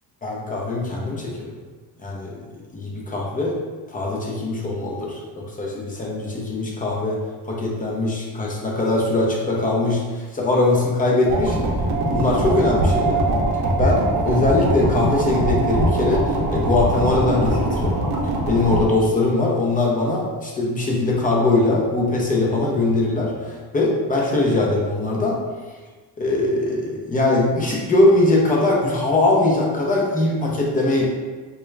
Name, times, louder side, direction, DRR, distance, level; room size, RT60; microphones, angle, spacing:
voice 1, 0.2-1.4 2.0-2.3 2.7-3.6 3.9-7.2 7.4-11.6 12.1-13.2 13.8-16.2 16.5-18.0 18.5-25.4 26.2-31.0, left 2 dB, 20° left, -3 dB, 0.5 m, -21 dB
sound 1, 11.3-18.8, right 1 dB, 60° right, 0.7 m, -22 dB
3.6 x 2.3 x 3.2 m, 1.4 s
cardioid pair, 155°, 43 cm